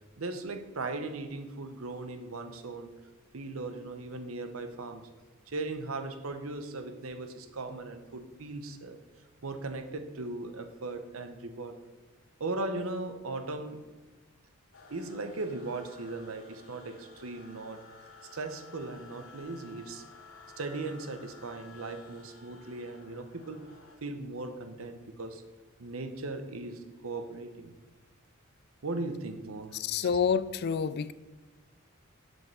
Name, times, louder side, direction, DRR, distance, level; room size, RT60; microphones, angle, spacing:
voice 1, 0.2-2.9 3.3-5.1 5.5-9.0 9.4-11.8 12.4-13.9 14.9-17.8 18.2-20.0 20.6-23.7 24.0-25.4 25.8-27.7 28.8-30.2, right 2 dB, 75° right, 0.9 m, -38 dB
sound 1, 14.7-24.0, left 4 dB, 85° left, 2.0 m, -53 dB
voice 2, 29.7-31.1, left 7 dB, 50° left, 0.4 m, -28 dB
7.6 x 5.4 x 6.2 m
head